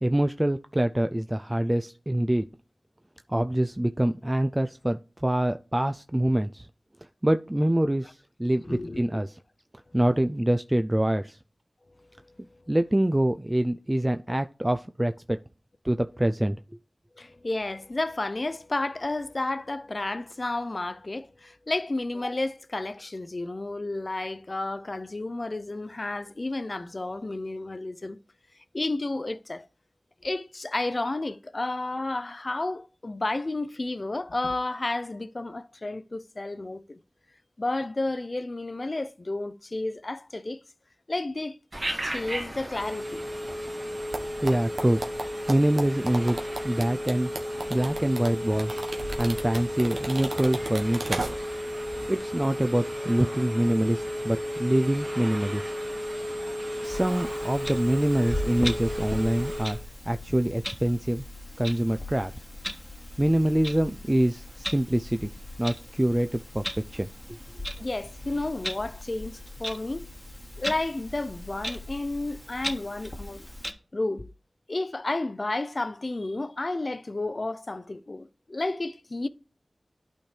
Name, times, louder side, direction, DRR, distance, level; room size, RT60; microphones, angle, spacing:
voice 1, 0.0-2.5 3.3-6.7 7.2-9.4 9.9-11.4 12.7-15.4 15.8-16.6 44.4-45.0 45.5-46.4 46.6-47.3 47.7-48.8 49.2-51.2 52.1-55.7 56.8-59.8 60.1-61.2 61.6-62.3 63.2-65.3 65.6-66.6 66.9-67.4, right 1 dB, 20° right, 0.3 m, -25 dB
voice 2, 8.6-9.0 12.1-12.6 17.2-28.2 28.7-29.7 30.2-37.0 37.6-40.6 41.1-41.6 42.0-43.2 67.8-70.1 70.6-73.4 73.9-74.3 74.7-79.3, left 2 dB, 50° left, 0.5 m, -31 dB
Telephone, 41.7-59.8, equal, 45° right, 2.1 m, -33 dB
sound 1, 44.1-51.7 52.0-52.1, right 2 dB, 85° right, 1.1 m, -35 dB
Clock, 56.8-73.7, left 1 dB, 10° left, 1.2 m, -38 dB
11.5 x 4.3 x 3.2 m
cardioid pair, 40°, 0 cm